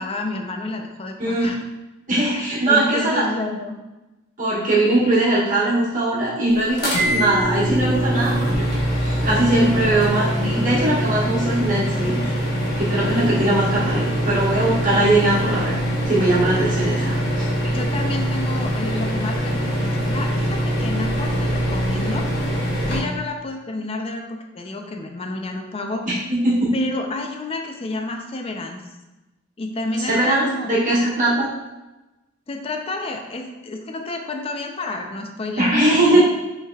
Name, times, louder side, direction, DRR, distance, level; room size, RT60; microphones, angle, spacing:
voice 1, 0.0-1.6 2.3-3.8 17.7-22.3 22.8-26.1 26.7-28.8 29.6-30.7 32.5-36.2, left 2 dB, 30° left, 3 dB, 0.5 m, -30 dB
voice 2, 2.1-3.2 4.4-8.5 9.0-12.3 12.8-15.7 16.0-17.4 26.3-26.5 30.1-31.5 35.6-36.2, right 1 dB, 40° right, -8 dB, 1.5 m, -20 dB
sound 1, 6.8-23.0, equal, 55° left, 1.1 m, -23 dB
5.5 x 3.3 x 2.3 m, 1.1 s
head